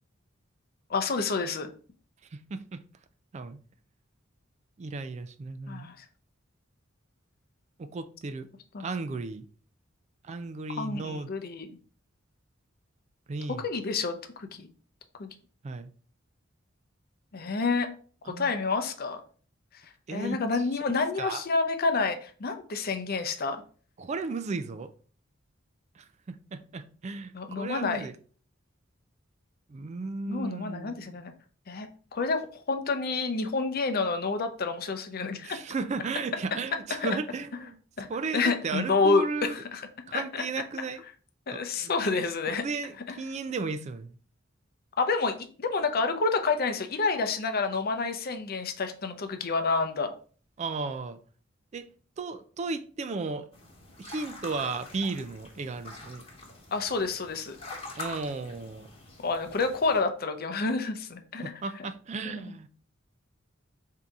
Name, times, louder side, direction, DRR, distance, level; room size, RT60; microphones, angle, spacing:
voice 1, 0.9-1.7 5.7-6.0 8.7-8.9 10.7-11.8 13.6-14.7 15.2-15.3 17.3-17.9 18.2-19.2 20.1-23.6 27.3-28.1 30.3-31.3 31.7-32.4 32.7-35.6 37.0-37.2 38.0-38.1 38.3-39.9 40.1-40.4 41.5-42.6 43.1-43.2 45.0-50.1 56.7-57.6 59.2-61.4 62.4-62.5, left 4 dB, 50° left, 0.6 m, -29 dB
voice 2, 2.3-2.8 3.3-3.6 4.8-5.9 7.8-8.5 8.8-9.5 10.2-11.3 13.3-13.7 15.6-15.9 18.3-18.5 20.1-20.4 21.2-21.4 24.0-24.9 26.0-28.1 29.7-31.2 35.4-37.8 38.1-39.6 40.1-41.0 41.5-42.1 42.6-44.1 50.6-51.2 51.7-51.9 52.2-53.5 54.0-56.2 58.0-58.9 61.4-62.7, right 4 dB, 35° right, 0.3 m, -35 dB
sound 1, 53.5-60.0, left 2 dB, 30° left, 1.1 m, -45 dB
3.8 x 2.8 x 4.6 m
head